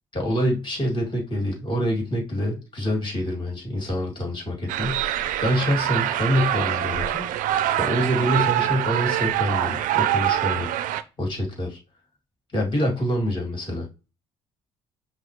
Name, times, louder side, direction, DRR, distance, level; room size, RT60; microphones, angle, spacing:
voice 1, 0.1-5.0 5.4-7.2 7.8-10.7 11.2-11.8 12.5-13.9, equal, 30° left, 0 dB, 2.3 m, -26 dB
sound 1, 4.7-11.0, right 12 dB, 60° right, 0.4 m, -24 dB
5.5 x 2.1 x 3.0 m, 0.29 s
hypercardioid pair, 50°, 15 cm